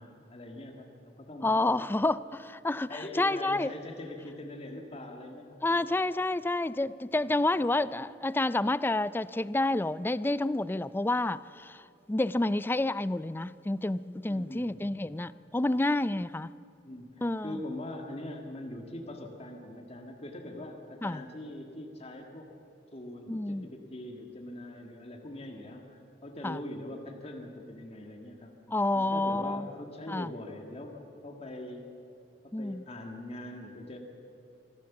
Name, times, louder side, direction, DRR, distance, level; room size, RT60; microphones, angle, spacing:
voice 1, 0.0-1.9 2.9-6.1 14.3-15.1 16.8-22.5 22.9-28.5 28.9-31.9 32.4-34.0, left 1 dB, 35° left, 1.8 m, -42 dB
voice 2, 1.4-3.7 5.6-16.5 17.2-17.6 21.0-21.2 23.3-23.7 26.4-26.6 28.7-29.7 30.1-30.3 32.5-32.8, left 2 dB, 10° left, 0.4 m, -29 dB
24.0 x 15.5 x 7.2 m
head